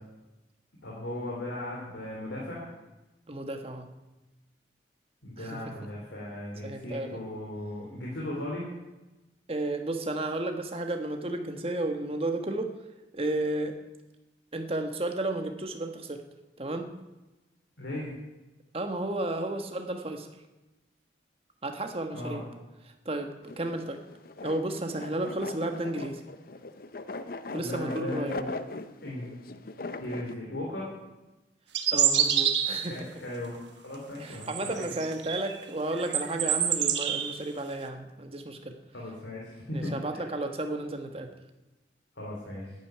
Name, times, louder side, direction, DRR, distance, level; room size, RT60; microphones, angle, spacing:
voice 1, 0.8-2.7 5.2-8.6 17.8-18.1 22.1-22.4 27.6-28.5 29.0-29.3 30.0-30.9 32.9-34.8 38.9-40.3 42.2-42.7, left 1 dB, 90° left, -4 dB, 3.5 m, -37 dB
voice 2, 3.3-3.9 5.4-5.7 6.6-7.2 9.5-12.7 13.1-13.8 14.5-16.2 16.6-16.9 18.7-20.3 21.6-22.5 23.0-24.0 24.4-26.2 27.5-28.4 31.9-33.1 34.2-38.8 39.7-41.3, right 2 dB, 30° right, 5 dB, 1.3 m, -33 dB
sound 1, 23.4-30.3, left 2 dB, 50° left, 0.6 m, -40 dB
sound 2, 31.7-33.0 34.4-35.6 35.9-37.4, right 9 dB, 75° right, 1.4 m, -26 dB
10.5 x 10.5 x 9.3 m, 1.1 s
head